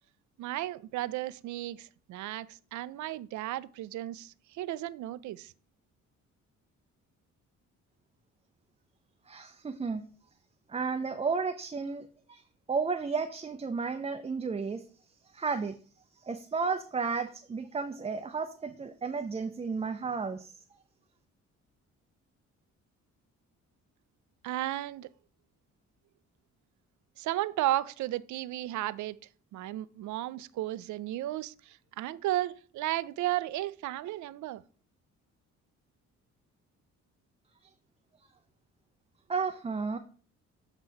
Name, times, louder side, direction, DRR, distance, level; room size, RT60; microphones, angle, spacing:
voice 1, 0.4-5.5 24.4-25.1 27.2-29.2 29.5-34.6, right 15 dB, 75° right, 0.5 m, -34 dB
voice 2, 9.3-10.0 10.7-12.4 12.7-14.8 15.3-15.8 16.2-20.5 39.3-40.0, right 5 dB, 20° right, 0.5 m, -33 dB
7.9 x 3.0 x 5.6 m
cardioid pair, 90°, 30 cm